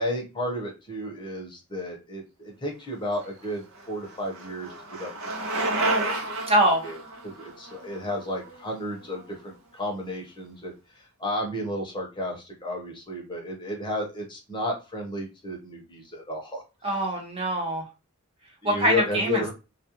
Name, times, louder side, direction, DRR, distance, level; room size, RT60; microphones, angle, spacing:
voice 1, 0.0-5.1 5.5-6.1 6.8-16.9 18.6-19.5, left 1 dB, 20° left, 0 dB, 0.7 m, -33 dB
Bicycle, 3.2-9.2, right 2 dB, 70° right, 0.7 m, -31 dB
voice 2, 6.5-6.8 16.8-17.8 18.6-19.5, right 1 dB, 25° right, 1 dB, 0.7 m, -23 dB
2.4 x 2.1 x 2.9 m, 0.29 s
head